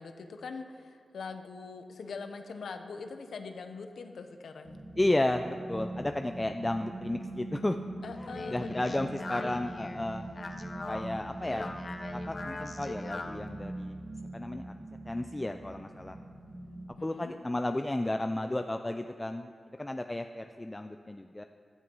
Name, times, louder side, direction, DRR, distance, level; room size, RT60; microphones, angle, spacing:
voice 1, 0.0-4.8 8.0-9.1 11.0-11.3 17.0-17.3, left 4 dB, 85° left, 7 dB, 1.1 m, -43 dB
sound 1, 4.6-16.8, right 1 dB, 60° right, 3.7 m, -42 dB
voice 2, 5.0-7.8 8.2-10.3 10.9-11.7 12.1-14.0 14.3-14.6 15.1-16.2 17.0-19.5 19.8-21.4, left 1 dB, 20° left, 6 dB, 0.5 m, -33 dB
Speech, 8.0-13.5, left 3 dB, 50° left, 1.1 m, -42 dB
16.5 x 11.0 x 5.5 m, 2.4 s
cardioid pair, 65°, 0 cm